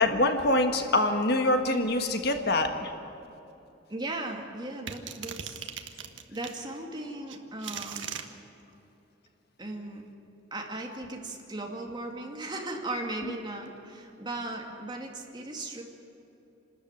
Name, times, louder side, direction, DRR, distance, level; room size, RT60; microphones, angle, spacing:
voice 1, 0.0-2.9, left 2 dB, 60° left, 6 dB, 1.6 m, -25 dB
voice 2, 3.9-5.7 6.3-8.1 9.6-10.0 10.5-15.8, right 2 dB, 25° right, 1 dB, 2.4 m, -37 dB
sound 1, 4.9-6.6 7.3-8.3, right 8 dB, 75° right, 1.4 m, -38 dB
27.5 x 13.5 x 9.1 m, 2.9 s
head